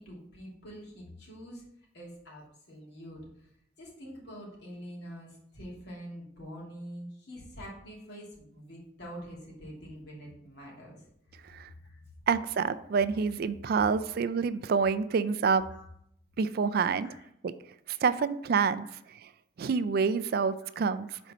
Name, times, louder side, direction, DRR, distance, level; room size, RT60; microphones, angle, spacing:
voice 1, 0.0-1.6 1.9-3.5 3.8-11.0 11.3-11.4 11.7-12.0 14.0-14.2 15.7-15.8 17.0-17.3 18.8-19.0 20.6-20.8 21.1-21.2, equal, 65° left, -4 dB, 2.7 m, -46 dB
voice 2, 12.3-15.6 16.4-17.1 17.4-17.5 18.0-18.9 19.6-21.1, right 5 dB, 55° right, 14 dB, 0.4 m, -27 dB
5.3 x 4.2 x 6.1 m, 0.72 s
head